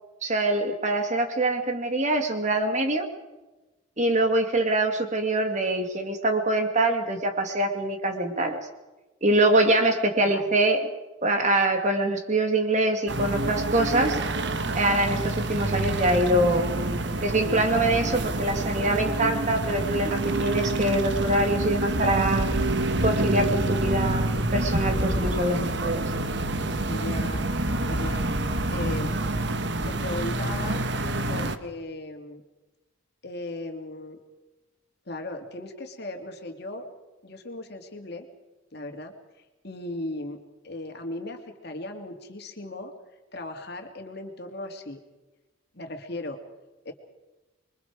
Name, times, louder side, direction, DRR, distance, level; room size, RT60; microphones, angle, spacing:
voice 1, 0.2-3.1 4.0-8.6 9.2-10.9 11.2-14.2 14.7-16.7 17.2-22.5 23.0-26.0, right 1 dB, 35° right, 5 dB, 2.4 m, -24 dB
voice 2, 10.2-10.6 26.8-27.5 27.9-28.3 28.7-29.1 29.8-30.8 31.3-32.4 33.2-34.2 35.1-36.9 37.2-38.3 38.7-39.1 39.6-40.4 40.6-42.9 43.3-45.0 45.7-46.4 46.8-46.9, left 2 dB, 55° left, 4 dB, 2.7 m, -37 dB
sound 1, 13.1-31.6, right 2 dB, 60° right, 1.3 m, -27 dB
27.0 x 23.5 x 4.9 m, 1.1 s
head